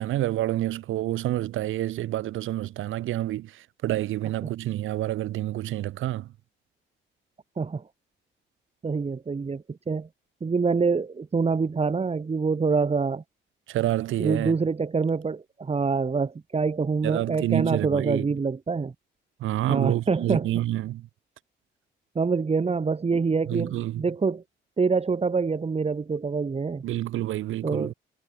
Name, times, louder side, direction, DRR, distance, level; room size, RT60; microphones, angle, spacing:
voice 1, 0.0-3.5 3.8-6.3 13.7-14.5 17.0-18.3 19.4-21.1 23.5-24.0 26.8-27.9, right 14 dB, 85° right, 4.5 m, -28 dB
voice 2, 8.8-10.1 10.4-13.2 14.2-18.9 19.7-20.5 22.1-24.4 24.8-26.8 27.6-27.9, right 4 dB, 30° right, 3.1 m, -26 dB
cardioid pair, 90°, 20 cm